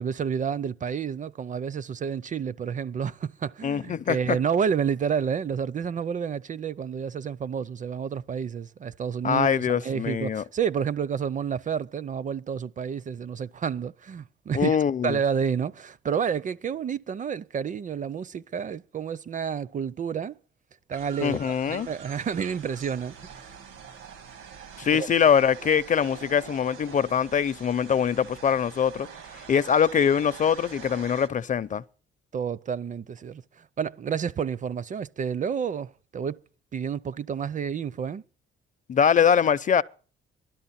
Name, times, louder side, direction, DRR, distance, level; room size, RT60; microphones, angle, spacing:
voice 1, 0.0-14.8 15.0-20.4 20.9-23.6 24.9-25.1 32.3-36.4 36.7-38.2, right 7 dB, 40° right, 0.6 m, -30 dB
voice 2, 3.6-4.4 9.2-10.4 14.5-15.2 21.2-21.9 24.8-29.1 29.5-31.8 38.9-39.8, left 7 dB, 40° left, 0.5 m, -23 dB
sound 1, 20.9-31.3, right 6 dB, 80° right, 1.6 m, -45 dB
17.5 x 12.0 x 4.2 m
cardioid pair, 90°, 20 cm